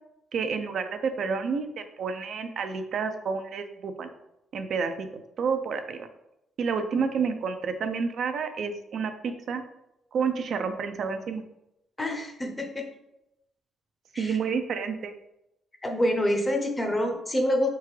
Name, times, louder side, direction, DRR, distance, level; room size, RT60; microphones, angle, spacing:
voice 1, 0.3-4.1 4.5-5.1 5.4-6.1 6.6-9.6 10.1-11.4 14.2-15.1, right 5 dB, 60° right, 8 dB, 0.4 m, -29 dB
voice 2, 12.0-12.9 14.1-14.4 15.8-17.7, left 1 dB, 20° left, 4 dB, 0.7 m, -26 dB
3.7 x 3.5 x 3.2 m, 0.84 s
cardioid pair, 90°, 0 cm